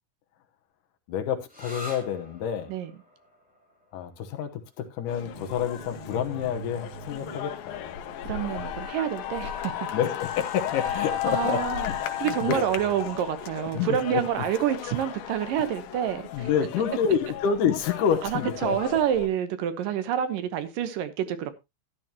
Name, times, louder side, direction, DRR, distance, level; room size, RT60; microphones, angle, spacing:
voice 1, 1.1-2.7 3.9-7.9 9.9-12.7 13.6-14.2 16.3-19.0, left 8 dB, 70° left, 2.6 m, -28 dB
sound 1, 1.5-8.9, left 1 dB, ahead, 3.9 m, -48 dB
sound 2, 5.1-19.3, left 10 dB, 85° left, 2.8 m, -35 dB
sound 3, 5.3-8.2 10.2-13.6, right 4 dB, 20° left, 1.2 m, -47 dB
voice 2, 8.2-9.7 11.3-11.9 12.2-16.5 18.2-21.5, right 10 dB, 75° right, 2.7 m, -28 dB
13.0 x 10.5 x 2.9 m
omnidirectional pair, 4.0 m